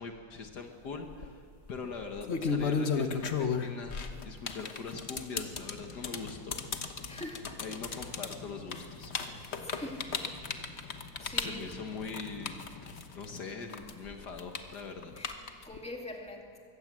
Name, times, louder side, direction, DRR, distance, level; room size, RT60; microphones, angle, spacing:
voice 1, 0.0-3.9 4.2-6.6 7.6-9.1 10.9-15.1 15.5-15.7, left 4 dB, 65° left, 4 dB, 1.9 m, -42 dB
sound 1, 0.9-1.3 2.0-13.4 13.7-15.8, left 5 dB, 40° left, 1.2 m, -34 dB
sound 2, 5.4-13.1, left 3 dB, 90° left, 2.5 m, -50 dB
voice 2, 7.0-7.5 9.6-10.1 10.8-11.7 15.1-16.6, left 1 dB, 5° left, 1 dB, 2.2 m, -44 dB
23.0 x 17.0 x 7.5 m, 2.2 s
omnidirectional pair, 2.0 m